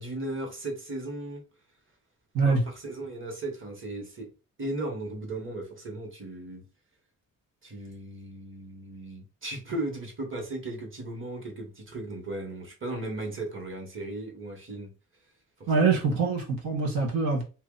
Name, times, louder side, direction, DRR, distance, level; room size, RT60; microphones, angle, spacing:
voice 1, 0.0-1.4 2.4-4.3 4.6-6.6 7.6-14.9 15.6-15.9, right 2 dB, 35° right, 1.4 m, -36 dB
voice 2, 15.7-17.4, right 4 dB, 85° right, 1.4 m, -24 dB
3.0 x 2.7 x 3.9 m
cardioid pair, 110°, 34 cm